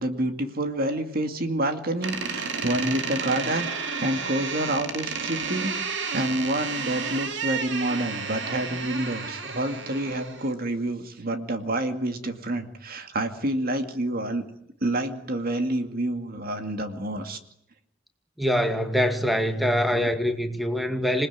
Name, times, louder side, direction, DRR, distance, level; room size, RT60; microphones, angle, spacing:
voice 1, 0.0-5.8 6.1-14.4 14.8-17.4, right 1 dB, 50° right, 7 dB, 2.3 m, -28 dB
Door, 2.0-10.5, right 5 dB, 65° right, 2.6 m, -32 dB
voice 2, 18.4-21.3, equal, ahead, 6 dB, 2.1 m, -24 dB
27.0 x 19.0 x 9.5 m, 0.78 s
head